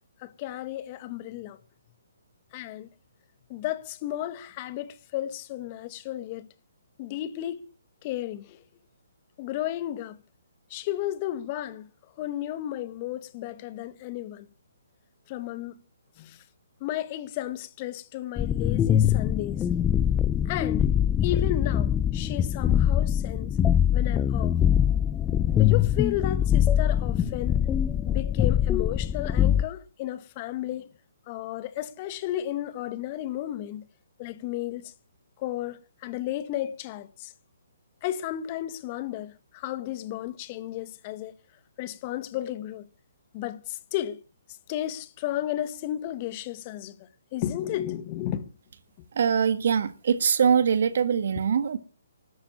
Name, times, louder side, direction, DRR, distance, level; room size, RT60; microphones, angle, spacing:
voice 1, 0.2-1.6 2.5-2.9 3.5-6.5 7.0-7.7 8.0-8.6 9.4-10.2 10.7-11.9 12.2-14.5 15.3-15.8 16.2-16.4 16.8-19.6 20.4-20.9 21.2-23.6 23.9-24.6 25.5-27.6 28.1-30.9 31.3-33.9 34.2-34.9 35.4-37.3 38.0-41.3 41.8-42.9 43.3-44.2 44.7-46.9 47.3-48.4, left 13 dB, 35° left, 1.6 m, -33 dB
sound 1, 18.4-29.6, left 10 dB, 15° left, 0.7 m, -23 dB
voice 2, 49.2-51.8, right 7 dB, 60° right, 1.6 m, -23 dB
13.0 x 10.0 x 7.2 m
hypercardioid pair, 140°, 0 cm